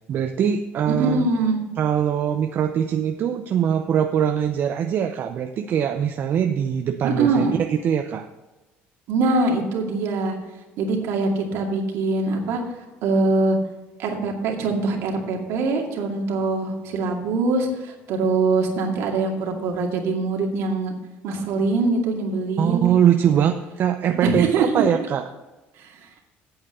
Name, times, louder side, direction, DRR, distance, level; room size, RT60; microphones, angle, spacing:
voice 1, 0.1-1.3 1.8-8.3 22.6-25.2, right 9 dB, 50° right, 6 dB, 0.6 m, -22 dB
voice 2, 0.9-1.6 7.0-7.6 9.1-10.3 10.8-12.6 13.0-13.6 14.0-20.9 21.2-23.5 24.2-24.8 25.8-26.1, right 3 dB, 70° right, 1 dB, 2.3 m, -23 dB
8.8 x 8.0 x 6.8 m, 1.1 s
cardioid pair, 105°, 5 cm